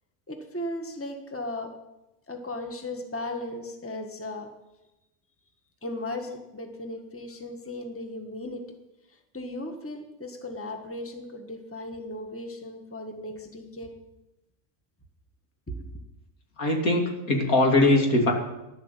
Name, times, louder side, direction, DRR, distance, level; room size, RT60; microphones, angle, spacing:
voice 1, 0.3-1.7 2.3-4.5 5.8-8.6 9.3-13.9 15.7-15.9, left 1 dB, 10° left, 5 dB, 1.5 m, -36 dB
voice 2, 16.6-18.3, left 2 dB, 75° left, 2 dB, 3.0 m, -21 dB
14.5 x 11.5 x 8.3 m, 0.97 s
omnidirectional pair, 1.5 m